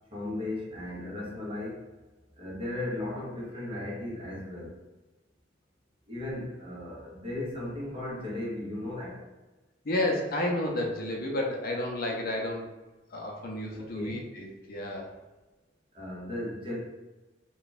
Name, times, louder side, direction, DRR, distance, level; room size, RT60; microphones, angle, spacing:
voice 1, 0.1-1.8 2.4-4.8 6.1-9.2 13.7-14.2 15.9-16.8, left 1 dB, 30° right, -5 dB, 1.1 m, -36 dB
voice 2, 9.8-12.7 13.1-15.1, left 1 dB, 55° left, 0 dB, 0.6 m, -31 dB
3.2 x 2.3 x 4.0 m, 1.2 s
head